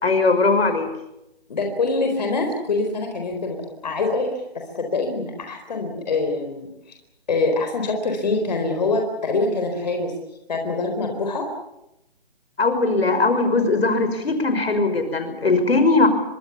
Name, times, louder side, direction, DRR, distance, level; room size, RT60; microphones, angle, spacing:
voice 1, 0.0-0.9 12.6-16.1, left 3 dB, 75° left, 8 dB, 5.7 m, -19 dB
voice 2, 1.5-7.0 7.3-10.1 10.5-11.5, left 3 dB, 45° left, 4 dB, 4.3 m, -25 dB
25.0 x 24.0 x 7.1 m, 0.87 s
hypercardioid pair, 165°, 31 cm